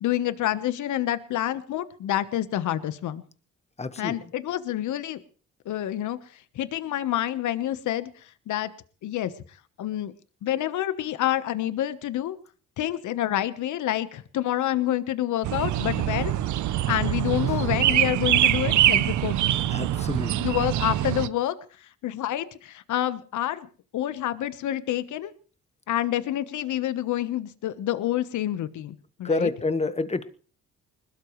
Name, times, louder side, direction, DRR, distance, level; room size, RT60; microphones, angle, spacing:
voice 1, 0.0-3.2 4.0-5.2 5.6-6.2 6.5-8.1 8.5-8.7 9.0-9.3 9.8-10.1 10.4-12.4 12.8-16.3 16.9-19.4 20.4-21.5 22.0-23.7 23.9-25.3 25.9-29.5, left 12 dB, 75° left, 13 dB, 1.2 m, -28 dB
voice 2, 3.8-4.2 19.7-20.4 29.2-30.3, left 3 dB, 20° left, 11 dB, 1.4 m, -28 dB
sound 1, 15.4-21.3, right 13 dB, 75° right, 0.8 m, -24 dB
21.5 x 20.0 x 3.2 m, 0.40 s
cardioid pair, 90°, 30 cm